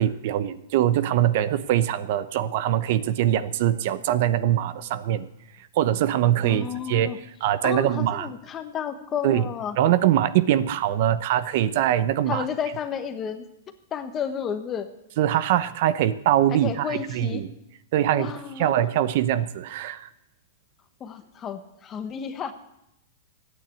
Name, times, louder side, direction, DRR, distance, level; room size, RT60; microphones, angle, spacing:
voice 1, 0.0-5.3 5.8-7.1 7.4-8.3 9.2-9.4 9.8-12.4 15.2-17.5 17.9-20.1, right 12 dB, 50° right, 15 dB, 0.7 m, -23 dB
voice 2, 6.4-7.2 7.6-9.8 12.3-13.5 13.9-14.9 16.5-17.4 18.1-18.7 21.0-22.5, left 7 dB, 20° left, 9 dB, 1.2 m, -32 dB
13.5 x 9.4 x 8.4 m, 0.85 s
supercardioid pair, 155°, 0 cm